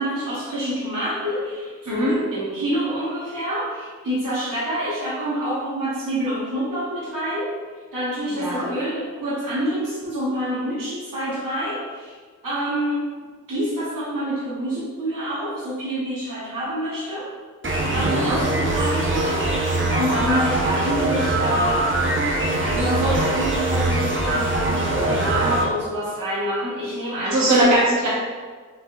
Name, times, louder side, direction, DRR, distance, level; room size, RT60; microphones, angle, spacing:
voice 1, 0.0-7.5 7.9-12.2 12.4-13.0 13.5-17.3 17.9-21.9 22.6-27.8, equal, 80° right, -9 dB, 1.5 m, -27 dB
sound 1, 17.6-25.6, right 2 dB, 35° right, 0.8 m, -22 dB
voice 2, 18.0-18.4 27.3-28.1, right 1 dB, 60° right, -8 dB, 1.5 m, -20 dB
5.2 x 3.4 x 2.6 m, 1.5 s
wide cardioid pair, 55°, 32 cm